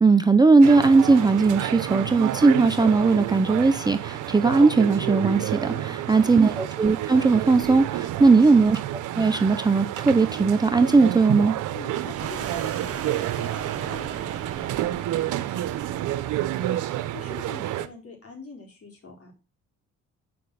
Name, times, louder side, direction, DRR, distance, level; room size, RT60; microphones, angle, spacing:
voice 1, 0.0-8.8 9.1-11.5, right 4 dB, 15° right, 0.6 m, -18 dB
sound 1, 0.6-17.9, right 13 dB, 85° right, 0.8 m, -30 dB
voice 2, 5.7-6.3 8.0-8.4 11.7-19.3, left 4 dB, 50° left, 4.2 m, -45 dB
sound 2, 12.1-16.4, right 8 dB, 50° right, 1.1 m, -36 dB
7.8 x 5.3 x 6.7 m
cardioid pair, 90°, 30 cm